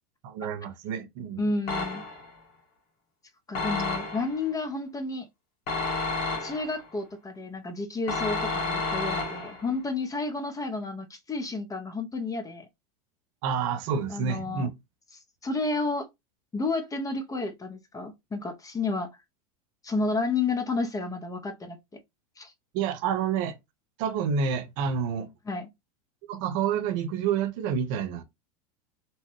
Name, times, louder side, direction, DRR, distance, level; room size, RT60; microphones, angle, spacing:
voice 1, 0.2-1.5 13.4-14.7 22.7-23.6 24.0-25.3 26.3-28.2, right 7 dB, 60° right, 0.8 m, -28 dB
voice 2, 1.4-2.0 3.5-5.3 6.4-12.7 14.1-14.7 15.4-16.1 16.5-19.1 19.8-21.8 22.4-22.5 25.5-25.7, left 3 dB, 20° left, 0.6 m, -31 dB
sound 1, 1.7-2.4 3.5-4.4 5.7-6.9 8.1-9.7, left 3 dB, 50° left, 1.4 m, -31 dB
3.0 x 2.1 x 3.1 m
hypercardioid pair, 105°, 19 cm